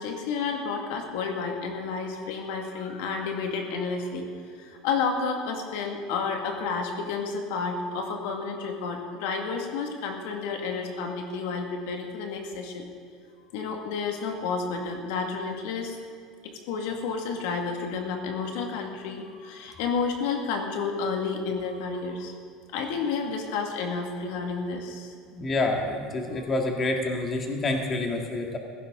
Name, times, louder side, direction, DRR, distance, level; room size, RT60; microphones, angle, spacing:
voice 1, 0.0-4.3 4.6-12.9 13.5-16.0 16.4-22.3 22.7-25.1 26.3-26.5, left 5 dB, 75° left, 3 dB, 1.9 m, -31 dB
voice 2, 25.3-28.6, left 2 dB, 25° left, 2 dB, 2.0 m, -27 dB
16.5 x 15.5 x 3.8 m, 2.3 s
supercardioid pair, 130°, 0 cm